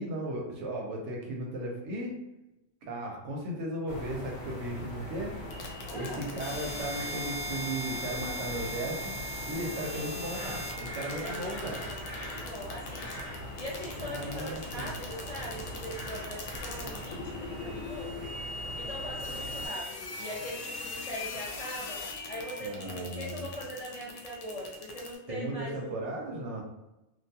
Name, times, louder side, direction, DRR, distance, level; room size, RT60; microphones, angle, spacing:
voice 1, 0.0-2.1 2.9-5.3 5.9-9.1 9.5-11.9 14.1-14.9 22.6-23.5 25.3-26.6, right 1 dB, 75° right, 0 dB, 0.9 m, -36 dB
sound 1, 3.9-19.7, left 1 dB, 65° left, 1.1 m, -42 dB
sound 2, 5.5-25.2, left 1 dB, 85° left, 0.9 m, -40 dB
voice 2, 5.9-6.3 9.8-10.2 11.1-13.2 13.6-18.3 18.7-22.0 22.3-26.0, equal, 50° left, -7 dB, 0.4 m, -41 dB
2.4 x 2.2 x 2.7 m, 0.95 s
omnidirectional pair, 1.2 m